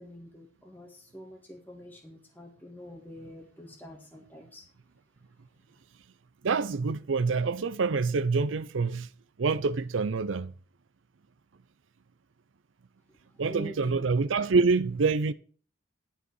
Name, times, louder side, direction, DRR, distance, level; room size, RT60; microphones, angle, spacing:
voice 1, 0.0-4.6 13.5-14.1, equal, 10° left, 1.5 m, -46 dB
voice 2, 6.4-9.1 9.4-10.5 13.4-15.3, right 4 dB, 85° right, 0.6 m, -26 dB
11.0 x 5.0 x 6.2 m
head